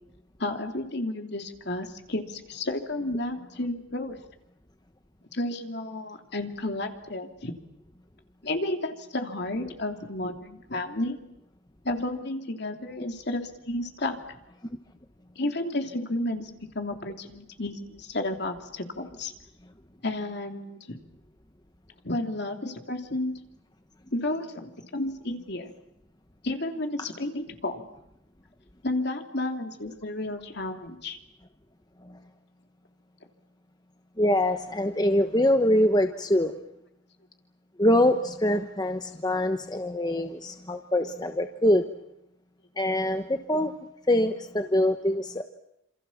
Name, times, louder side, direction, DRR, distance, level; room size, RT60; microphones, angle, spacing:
voice 1, 0.4-4.2 5.3-7.5 8.4-11.2 11.8-14.1 15.4-19.3 20.0-21.0 22.0-23.3 24.1-25.7 26.4-27.8 28.8-31.2, left 1 dB, 55° left, 5 dB, 3.1 m, -32 dB
voice 2, 34.2-36.5 37.8-41.8 42.8-43.7 44.1-45.4, left 1 dB, 20° left, 7 dB, 1.1 m, -24 dB
27.5 x 27.5 x 7.3 m, 0.82 s
head